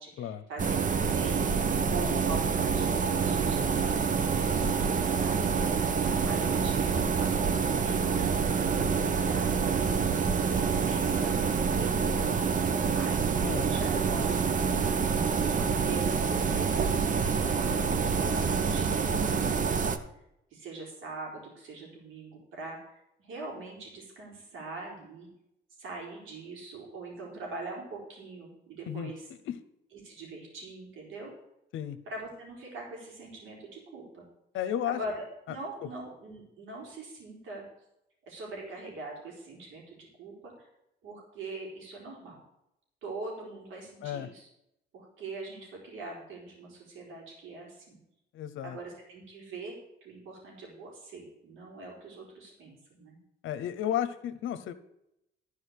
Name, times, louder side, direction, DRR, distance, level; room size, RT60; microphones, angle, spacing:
voice 1, 0.0-1.5 1.9-9.6 10.5-12.2 12.5-15.1 15.4-20.2 20.5-25.3 25.8-29.3 29.9-31.3 32.1-34.2 34.8-37.7 38.3-40.7 41.0-42.4 43.0-44.5 44.9-48.0 48.6-53.2, right 3 dB, 80° right, -1 dB, 4.1 m, -43 dB
sound 1, 0.6-20.0, right 6 dB, 40° right, 0.9 m, -27 dB
voice 2, 13.4-13.7 28.9-29.1 29.5-29.6 31.7-32.0 34.5-35.0 44.0-44.3 48.3-48.8 53.4-54.7, left 10 dB, 80° left, 12 dB, 0.9 m, -33 dB
12.0 x 5.0 x 8.4 m, 0.83 s
cardioid pair, 90°, 20 cm